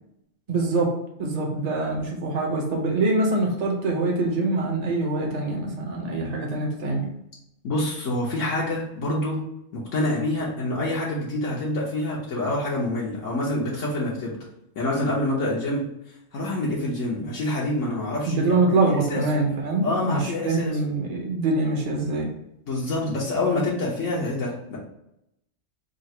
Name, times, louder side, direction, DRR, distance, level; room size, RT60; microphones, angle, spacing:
voice 1, 0.5-7.1 18.2-22.3, right 2 dB, 35° right, 0 dB, 0.8 m, -24 dB
voice 2, 7.6-9.5 9.7-14.4 14.8-15.8 16.3-18.5 19.1-19.2 19.8-20.8 22.7-24.8, left 1 dB, 75° left, -5 dB, 1.3 m, -26 dB
3.8 x 2.4 x 4.3 m, 0.82 s
omnidirectional pair, 1.3 m